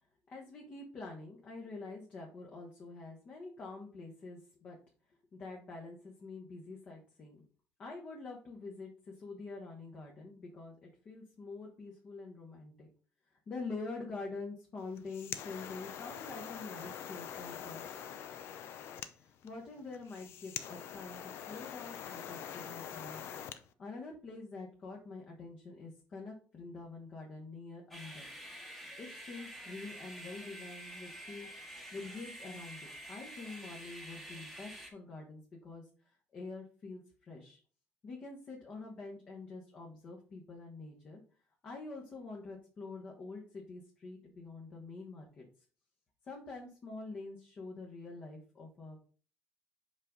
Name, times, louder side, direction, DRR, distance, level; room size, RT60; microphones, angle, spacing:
voice 1, 0.3-4.8 5.3-7.4 7.8-12.9 13.3-18.0 19.2-23.2 23.8-28.3 28.7-37.6 38.0-41.2 41.6-45.4 46.3-49.0, left 3 dB, 35° left, -1 dB, 1.2 m, -46 dB
sound 1, 14.8-23.6, left 9 dB, 60° left, 0.5 m, -44 dB
sound 2, 27.9-34.9, equal, 5° left, 1.2 m, -48 dB
5.4 x 5.1 x 3.8 m, 0.41 s
cardioid pair, 150°, 5 cm